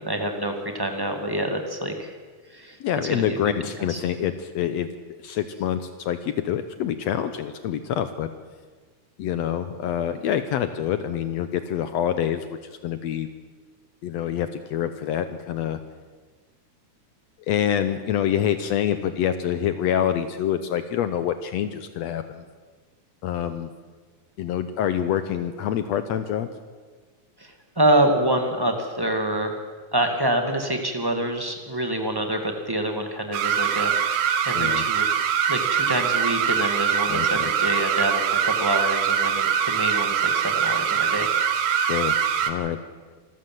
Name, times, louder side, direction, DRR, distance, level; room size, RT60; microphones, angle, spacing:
voice 1, 0.0-2.1 2.5-2.8 3.1-3.4 3.9-4.0 27.4-29.6 29.9-35.1 35.5-41.3, right 1 dB, 10° right, 4 dB, 1.3 m, -26 dB
voice 2, 2.8-4.9 5.2-8.3 9.2-13.3 14.0-15.8 17.5-22.4 23.2-23.7 24.4-26.5 34.5-34.9 37.1-37.3 41.8-42.2 42.5-42.8, left 9 dB, 70° left, 10 dB, 1.8 m, -26 dB
sound 1, 33.3-42.5, right 8 dB, 80° right, 2.7 m, -23 dB
26.0 x 13.5 x 7.7 m, 1.4 s
omnidirectional pair, 3.5 m